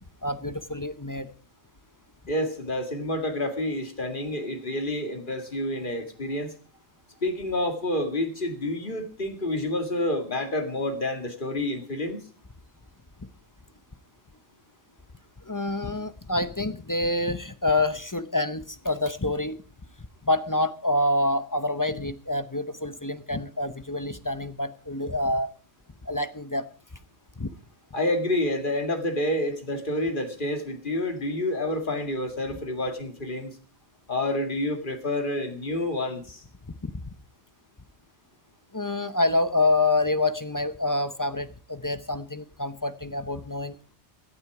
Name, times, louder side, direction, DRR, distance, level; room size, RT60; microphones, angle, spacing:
voice 1, 0.2-1.3 13.2-13.3 15.4-19.6 20.2-25.5 26.0-26.7 27.4-27.5 36.8-36.9 38.7-43.8, left 2 dB, 20° left, 11 dB, 0.6 m, -27 dB
voice 2, 2.3-6.5 7.2-12.3 27.9-33.6 34.1-36.4, left 1 dB, 45° left, 6 dB, 2.3 m, -28 dB
17.0 x 11.5 x 4.8 m, 0.40 s
omnidirectional pair, 1.2 m